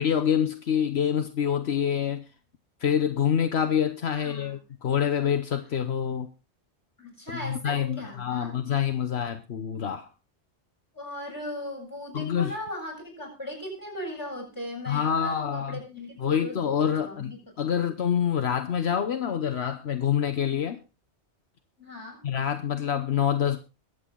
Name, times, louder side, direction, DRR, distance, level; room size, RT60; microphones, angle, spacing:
voice 1, 0.0-2.2 2.8-6.3 7.4-10.1 12.1-12.5 14.9-15.8 16.2-17.3 17.6-20.8 22.2-23.6, left 8 dB, 70° left, 1.1 m, -26 dB
voice 2, 4.1-4.6 7.0-8.6 10.9-16.7 17.0-17.4 17.7-17.9 21.8-22.2, left 1 dB, 15° left, 7.7 m, -38 dB
22.0 x 8.1 x 3.8 m
omnidirectional pair, 1.1 m